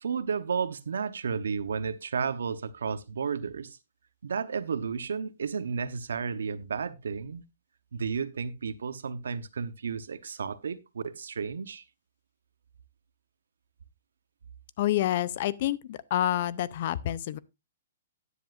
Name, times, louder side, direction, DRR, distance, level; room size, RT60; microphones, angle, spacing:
voice 1, 0.0-3.7 4.2-7.4 7.9-11.8, right 6 dB, 90° right, 1.0 m, -32 dB
voice 2, 14.8-17.4, left 12 dB, 50° left, 0.6 m, -28 dB
13.0 x 10.0 x 2.5 m
hypercardioid pair, 150°, 0 cm